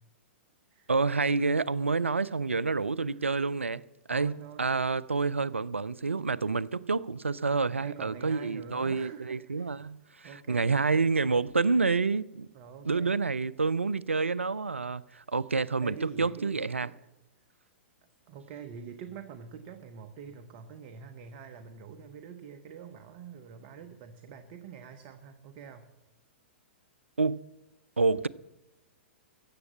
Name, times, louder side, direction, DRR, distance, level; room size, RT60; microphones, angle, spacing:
voice 1, 0.9-3.8 4.1-12.5 12.8-16.9 27.2-27.5 28.0-28.3, right 4 dB, 85° right, 0.4 m, -28 dB
voice 2, 4.1-4.8 6.4-6.6 7.8-9.8 10.0-10.7 12.5-13.1 15.8-16.9 18.3-25.9, right 7 dB, 40° right, 0.9 m, -46 dB
14.5 x 7.3 x 8.4 m
figure-of-eight pair, 110°, 7 cm